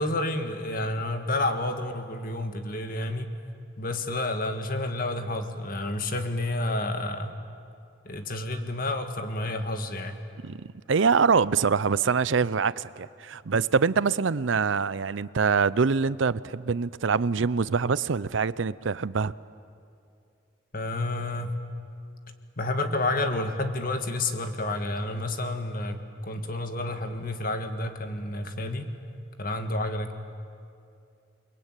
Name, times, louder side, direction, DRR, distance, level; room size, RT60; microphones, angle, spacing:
voice 1, 0.0-3.3 3.8-7.4 8.1-10.2 20.7-21.6 22.6-28.9 29.4-30.2, left 2 dB, 45° left, 6 dB, 1.9 m, -30 dB
voice 2, 10.4-19.3, right 5 dB, 70° right, 18 dB, 0.6 m, -24 dB
29.0 x 22.5 x 9.1 m, 2.5 s
head